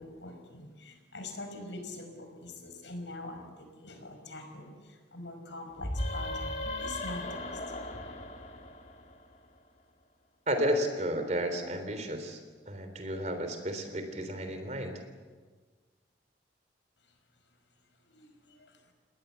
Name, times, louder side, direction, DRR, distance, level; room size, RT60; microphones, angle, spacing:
voice 1, 0.0-8.0 18.1-18.8, left 2 dB, 80° left, 5 dB, 5.4 m, -44 dB
sound 1, 5.8-9.4, left 1 dB, 40° left, 3.0 m, -37 dB
voice 2, 10.5-12.4 12.7-15.0, equal, 40° right, 8 dB, 3.5 m, -32 dB
30.0 x 19.5 x 8.2 m, 1.5 s
head